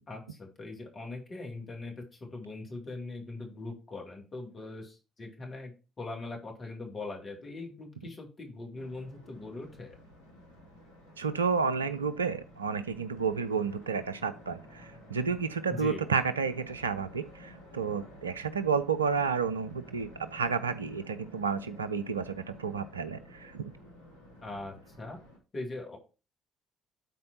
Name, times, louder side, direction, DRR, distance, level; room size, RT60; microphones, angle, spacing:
voice 1, 0.1-5.7 6.0-10.0 15.7-16.0 24.4-25.2 25.5-26.0, left 2 dB, 40° left, 1 dB, 2.5 m, -41 dB
sound 1, 8.7-25.4, left 1 dB, 85° left, 1.4 m, -53 dB
voice 2, 11.2-23.7, right 5 dB, 85° right, 11 dB, 0.4 m, -31 dB
12.5 x 4.3 x 2.8 m, 0.31 s
figure-of-eight pair, 50°, 0 cm